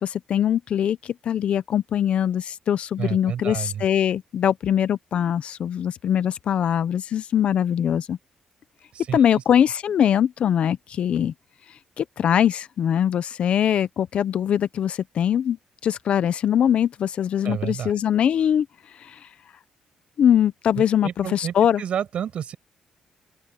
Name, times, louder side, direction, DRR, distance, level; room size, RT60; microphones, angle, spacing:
voice 1, 0.0-8.2 9.1-11.3 12.0-15.6 15.8-18.7 19.0-19.2 20.2-21.8, left 9 dB, 60° left, 0.8 m, -22 dB
voice 2, 3.0-3.9 8.9-9.2 17.4-18.0 20.8-22.6, right 9 dB, 60° right, 6.3 m, -30 dB
open air
cardioid pair, 120°, 2 cm